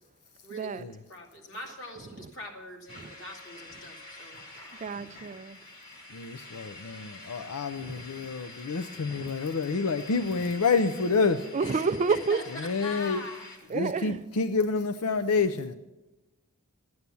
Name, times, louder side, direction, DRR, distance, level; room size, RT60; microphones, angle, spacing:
voice 1, 0.4-4.4 11.6-13.5, left 2 dB, 60° left, 2.5 m, -42 dB
sound 1, 2.9-13.6, left 2 dB, 45° left, 2.5 m, -47 dB
voice 2, 4.8-5.6 7.8-8.3 9.0-9.3 11.5-12.4 13.7-14.2, right 4 dB, 35° right, 0.4 m, -30 dB
voice 3, 6.1-11.5 12.6-13.2 13.7-15.7, left 4 dB, 85° left, 0.5 m, -28 dB
13.0 x 9.5 x 6.9 m
head